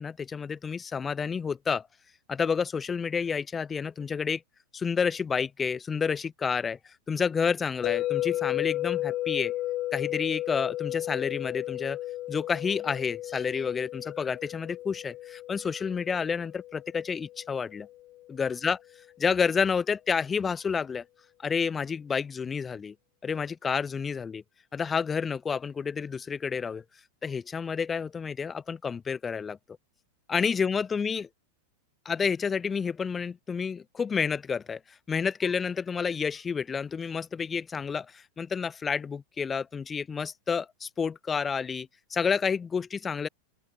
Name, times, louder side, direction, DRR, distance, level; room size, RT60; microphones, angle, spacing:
voice 1, 0.0-1.9 2.3-4.4 4.7-6.8 7.1-9.5 9.9-12.0 12.3-17.9 18.3-18.8 19.2-21.0 21.4-22.9 23.2-24.4 24.7-26.8 27.2-29.6 30.3-31.3 32.1-34.8 35.1-43.3, left 6 dB, 20° left, 2.1 m, -29 dB
sound 1, 7.8-17.9, left 15 dB, 35° left, 3.4 m, -34 dB
open air
figure-of-eight pair, 90°, 0 cm